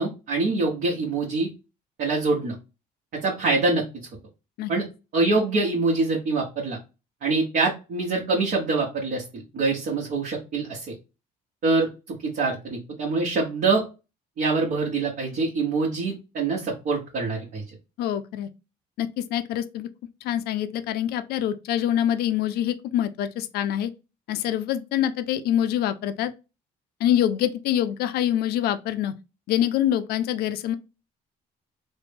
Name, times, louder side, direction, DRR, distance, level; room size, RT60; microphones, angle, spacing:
voice 1, 0.0-1.5 2.0-2.5 3.1-3.8 4.7-4.9 5.1-6.8 7.2-10.9 11.6-13.8 14.4-17.6, right 3 dB, 60° right, 1.1 m, -25 dB
voice 2, 18.0-18.5 19.0-19.9 20.2-23.9 24.3-26.3 27.0-29.1 29.5-30.7, left 11 dB, 70° left, 0.4 m, -25 dB
3.1 x 2.1 x 3.3 m
cardioid pair, 110°, 17 cm